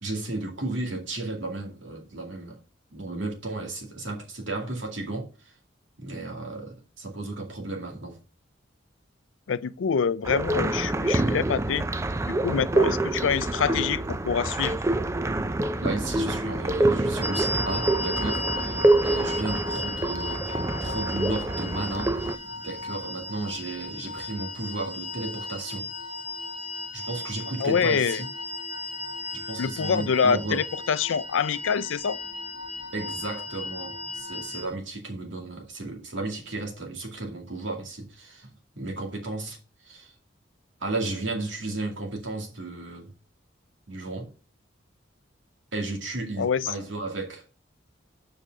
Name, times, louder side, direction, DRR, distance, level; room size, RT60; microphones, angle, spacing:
voice 1, 0.0-2.6 2.9-5.5 6.0-8.2 15.8-22.3 22.6-25.9 26.9-28.3 29.3-30.6 32.9-39.6 39.8-40.1 40.8-43.1 43.9-44.3 45.7-47.4, right 2 dB, 75° right, 2.3 m, -34 dB
voice 2, 9.5-11.8 12.3-14.8 27.6-28.2 29.6-32.2 46.4-46.6, left 6 dB, 85° left, 0.4 m, -26 dB
sound 1, 10.2-22.3, right 2 dB, 15° right, 0.4 m, -26 dB
sound 2, 17.2-34.7, left 2 dB, 35° right, 1.7 m, -35 dB
7.6 x 5.1 x 4.7 m
head